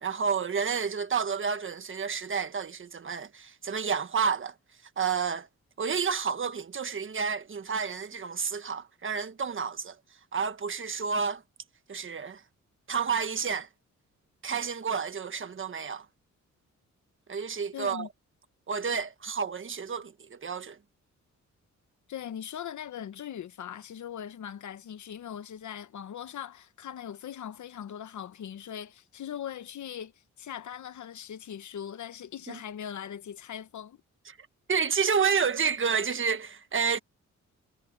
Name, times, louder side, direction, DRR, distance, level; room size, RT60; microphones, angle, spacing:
voice 1, 0.0-4.5 5.0-5.5 5.8-10.0 10.3-11.4 11.9-12.4 12.9-13.7 14.4-16.0 17.3-18.1 18.7-20.8 32.5-32.6 34.3-34.4 34.7-37.0, right 6 dB, 40° right, 1.4 m, -30 dB
voice 2, 17.7-18.1 22.1-30.1 30.4-34.0, left 9 dB, 75° left, 1.2 m, -40 dB
cardioid pair, 120°, 30 cm